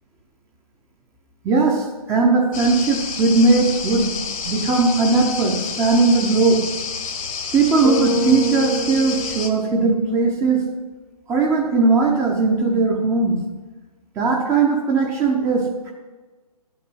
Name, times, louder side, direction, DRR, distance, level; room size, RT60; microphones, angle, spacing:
voice 1, 1.4-4.1 4.4-6.6 7.5-10.6 11.3-13.4 14.2-15.7, right 3 dB, 15° right, 0 dB, 1.0 m, -18 dB
sound 1, 2.5-9.5, left 5 dB, 60° left, 1.4 m, -29 dB
Bass guitar, 7.8-10.2, left 2 dB, 25° left, 1.0 m, -26 dB
10.5 x 7.4 x 6.2 m, 1.3 s
figure-of-eight pair, 140°, 20 cm